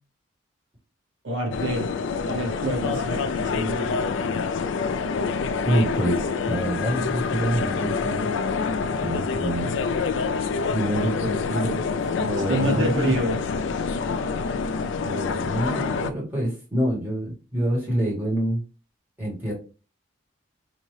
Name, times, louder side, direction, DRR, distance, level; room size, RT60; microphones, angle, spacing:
voice 1, 1.2-1.9 2.2-4.0 11.2-11.8 12.5-13.4, right 1 dB, 70° right, 2 dB, 1.0 m, -27 dB
sound 1, 1.5-16.1, left 5 dB, 70° left, 0.3 m, -26 dB
voice 2, 5.6-8.3 9.0-9.7 10.7-11.7 12.2-13.2 15.0-18.6 19.2-19.5, right 1 dB, 10° right, -5 dB, 1.5 m, -26 dB
4.5 x 2.7 x 3.2 m, 0.34 s
head